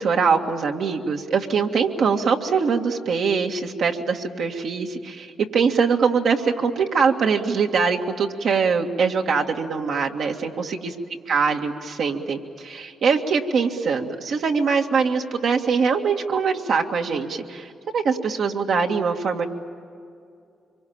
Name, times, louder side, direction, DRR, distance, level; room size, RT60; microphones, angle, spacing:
voice 1, 0.0-10.9 11.3-19.5, right 5 dB, 70° right, 2 dB, 1.9 m, -23 dB
25.0 x 24.0 x 8.8 m, 2.4 s
supercardioid pair, 50°, 0 cm